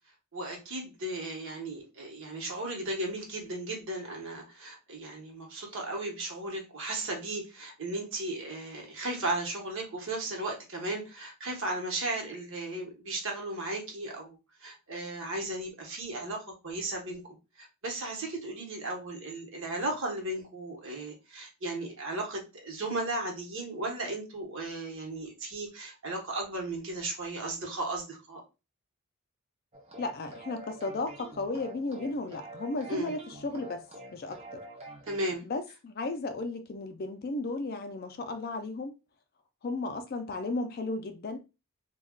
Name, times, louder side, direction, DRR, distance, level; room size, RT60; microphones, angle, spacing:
voice 1, 0.3-17.2 17.6-28.4 32.9-33.1 35.1-35.4, right 2 dB, 60° right, 0.9 m, -35 dB
sound 1, 29.7-35.4, right 1 dB, 30° right, 0.6 m, -47 dB
voice 2, 30.0-33.9 34.1-34.7 35.4-38.9 39.6-41.4, left 2 dB, 45° left, 0.4 m, -34 dB
2.3 x 2.2 x 3.6 m
head